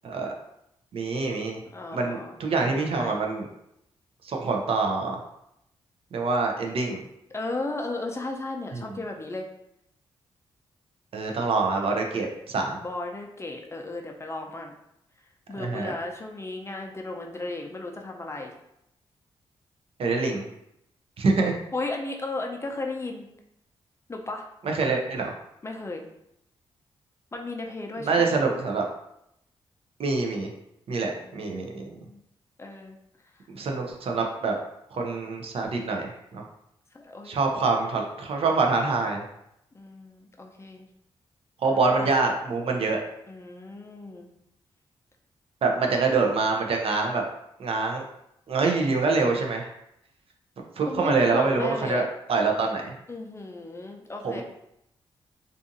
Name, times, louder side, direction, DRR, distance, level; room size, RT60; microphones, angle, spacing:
voice 1, 0.9-1.6 1.9-3.5 4.2-5.2 6.1-7.0 8.7-8.8 11.1-12.8 15.5-15.9 20.0-20.5 21.2-21.6 24.6-25.4 28.0-28.9 30.0-30.5 30.9-32.0 33.5-34.6 34.9-36.4 37.3-39.2 41.6-43.0 45.6-47.2 47.6-48.0 48.5-49.7 50.8-52.0 52.3-52.9 54.2-54.4, right 4 dB, 60° right, 2 dB, 0.5 m, -25 dB
voice 2, 1.7-2.4 2.6-3.2 7.3-9.5 12.8-14.7 15.5-18.5 21.7-23.2 24.1-24.4 25.6-26.0 27.3-28.3 31.1-32.2 32.6-33.0 36.9-37.4 39.7-40.9 41.9-42.2 43.3-44.3 50.9-52.0 53.1-54.4, left 2 dB, 25° left, 2 dB, 0.5 m, -35 dB
2.6 x 2.4 x 2.5 m, 0.79 s
supercardioid pair, 55°, 11 cm